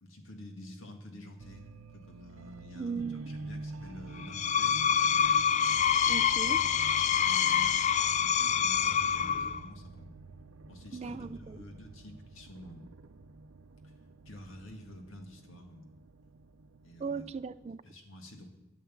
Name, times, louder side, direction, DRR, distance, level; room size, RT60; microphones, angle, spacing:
voice 1, 0.0-5.4 7.2-10.1 10.7-12.9 13.8-13.9 14.3-15.8 16.8-17.3 17.8-18.5, left 1 dB, 70° left, 3 dB, 2.1 m, -49 dB
sound 1, 1.4-17.7, right 3 dB, 85° right, 0.6 m, -48 dB
voice 2, 2.8-3.3 6.1-6.7 10.9-11.6 17.0-17.8, right 5 dB, 30° right, 11 dB, 0.4 m, -37 dB
Screech, 4.2-9.7, left 8 dB, 35° left, 0.3 m, -26 dB
13.0 x 8.3 x 7.3 m, 1.0 s
head